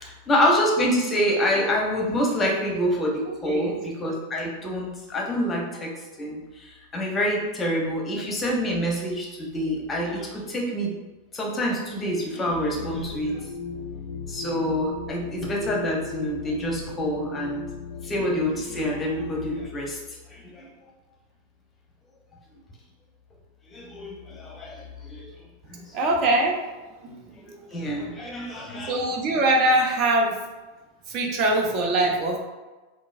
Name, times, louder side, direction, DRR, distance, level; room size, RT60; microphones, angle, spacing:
voice 1, 0.3-5.9 6.2-10.9 11.3-13.5 14.3-17.6 18.0-20.0 20.3-20.7 23.7-25.3 25.7-25.9 27.3-29.0, equal, 20° left, -1 dB, 0.7 m, -27 dB
voice 2, 3.4-3.8 25.9-26.6 27.0-27.2 28.8-30.4 31.1-32.4, right 2 dB, 40° right, 1 dB, 0.5 m, -22 dB
sound 1, 12.5-19.7, left 6 dB, 50° left, 0.4 m, -37 dB
3.8 x 2.2 x 2.5 m, 1.2 s
figure-of-eight pair, 90°, 0 cm